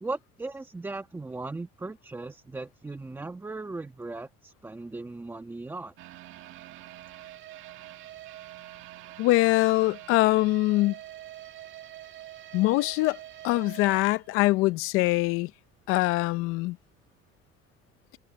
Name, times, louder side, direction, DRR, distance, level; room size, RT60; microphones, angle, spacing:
voice 1, 0.0-5.9, right 3 dB, 10° right, 1.6 m, -37 dB
sound 1, 6.0-15.0 15.3-15.4 15.9-16.0, right 14 dB, 70° right, 2.0 m, -45 dB
voice 2, 9.2-11.0 12.5-13.2 13.4-15.5 15.9-16.8, left 19 dB, 85° left, 0.7 m, -23 dB
cardioid pair, 145°, 21 cm